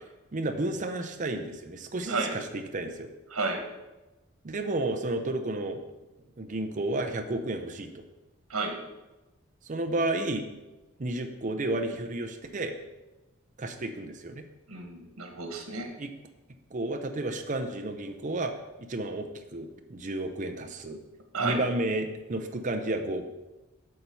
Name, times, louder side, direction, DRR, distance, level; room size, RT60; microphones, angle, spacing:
voice 1, 0.3-3.1 4.4-5.8 6.4-7.9 9.6-10.5 11.0-12.7 13.6-14.4 16.0-16.1 16.7-18.5 18.8-21.0 21.4-23.2, right 2 dB, 35° right, 5 dB, 0.6 m, -32 dB
voice 2, 3.3-3.6 8.5-8.8 14.7-15.9 21.3-21.6, right 3 dB, 90° right, 4 dB, 1.4 m, -31 dB
8.2 x 4.4 x 6.9 m, 1.1 s
head